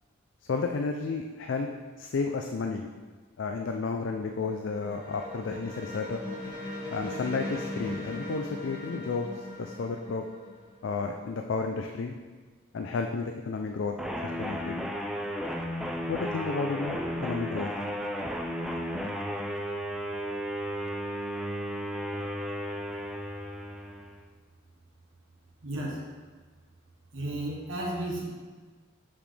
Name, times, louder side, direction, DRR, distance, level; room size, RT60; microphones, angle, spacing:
voice 1, 0.5-2.9 3.4-6.2 6.9-10.3 10.8-12.1 12.7-14.0 14.2-14.7 16.1-17.7, left 4 dB, 65° left, 4 dB, 0.4 m, -32 dB
sound 1, 4.1-11.5, left 1 dB, 25° left, 1.7 m, -39 dB
sound 2, 14.0-24.2, equal, ahead, 0.3 m, -34 dB
voice 2, 25.6-26.0 27.1-28.2, right 1 dB, 90° right, -3 dB, 1.2 m, -33 dB
6.1 x 6.1 x 3.3 m, 1.4 s
head